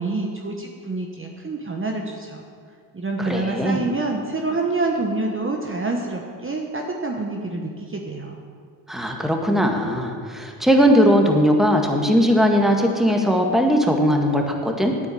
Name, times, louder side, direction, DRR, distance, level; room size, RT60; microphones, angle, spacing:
voice 1, 0.0-2.4 2.9-8.4, right 3 dB, 25° right, 1 dB, 1.3 m, -27 dB
voice 2, 3.2-3.8 8.9-14.9, equal, ahead, 2 dB, 1.7 m, -19 dB
9.2 x 8.4 x 8.5 m, 2.1 s
supercardioid pair, 80°, 49 cm